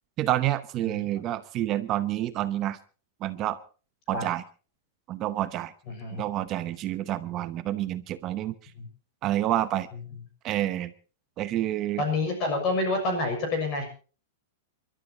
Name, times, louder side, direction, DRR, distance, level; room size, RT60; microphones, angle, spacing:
voice 1, 0.2-2.8 3.2-3.6 4.1-4.4 5.1-5.7 6.2-8.7 9.2-9.9 10.4-10.9 11.4-12.0, right 13 dB, 25° right, 12 dB, 0.8 m, -28 dB
voice 2, 0.8-1.3 4.1-4.2 5.9-6.2 8.8-8.9 12.0-13.8, left 2 dB, 30° left, 4 dB, 6.3 m, -28 dB
29.5 x 13.0 x 2.9 m, 0.38 s
supercardioid pair, 175°, 0 cm